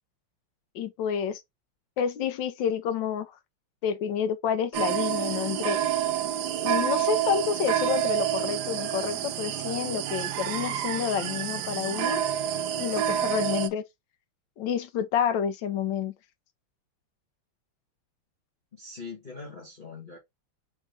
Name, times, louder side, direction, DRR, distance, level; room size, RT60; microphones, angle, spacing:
voice 1, 0.7-1.4 2.0-3.3 3.8-5.8 6.6-12.2 12.8-13.8 14.6-16.1, left 8 dB, 70° left, 1.2 m, -29 dB
sound 1, 4.7-13.7, right 10 dB, 75° right, 1.0 m, -28 dB
voice 2, 18.7-20.2, left 4 dB, 30° left, 1.3 m, -42 dB
4.0 x 3.6 x 3.2 m
omnidirectional pair, 2.3 m